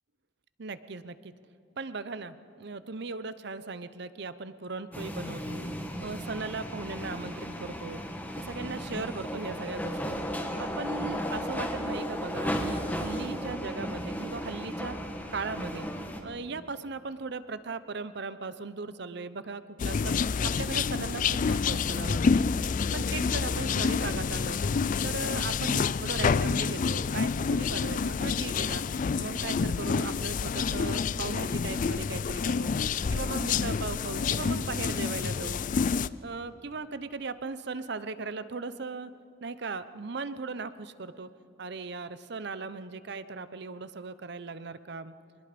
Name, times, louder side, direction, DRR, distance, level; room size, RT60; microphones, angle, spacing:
voice 1, 0.6-1.3 1.8-5.6 6.0-8.0 8.4-10.2 10.6-15.0 15.3-15.9 16.2-20.2 20.4-22.5 22.9-24.6 25.0-28.8 29.1-32.7 33.1-35.6 36.2-39.1 39.4-41.3 41.6-45.1, right 4 dB, 65° right, 14 dB, 0.8 m, -38 dB
sound 1, 4.9-16.2, equal, 10° left, 1.7 m, -35 dB
sound 2, 19.8-36.1, left 5 dB, 45° left, 0.4 m, -28 dB
24.0 x 20.5 x 5.2 m, 2.6 s
head